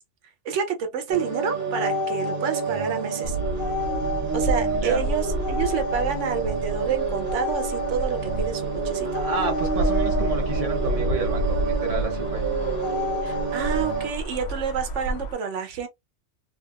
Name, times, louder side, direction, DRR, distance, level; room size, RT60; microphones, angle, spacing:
voice 1, 0.4-3.4 4.3-9.2 13.2-15.9, right 6 dB, 85° right, 1.0 m, -29 dB
sound 1, 1.1-14.1, right 3 dB, 55° right, 1.3 m, -28 dB
sound 2, 3.2-15.3, right 1 dB, 85° left, 0.9 m, -30 dB
voice 2, 4.7-5.0 9.0-12.4, right 4 dB, 35° right, 0.9 m, -30 dB
2.9 x 2.7 x 2.3 m
omnidirectional pair, 1.2 m